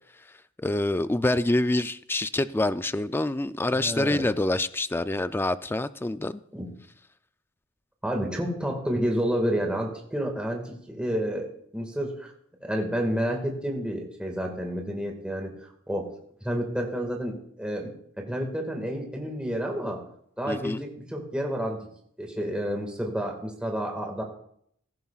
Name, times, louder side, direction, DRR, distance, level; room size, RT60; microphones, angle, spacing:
voice 1, 0.6-6.4 20.5-20.8, left 2 dB, 10° left, 0.4 m, -26 dB
voice 2, 3.7-4.2 6.5-6.7 8.0-11.5 11.7-12.3 12.6-15.6 15.9-16.1 16.4-17.9 18.2-20.0 20.4-21.8 22.2-24.2, equal, 5° right, 1.8 m, -30 dB
16.5 x 14.5 x 2.4 m
head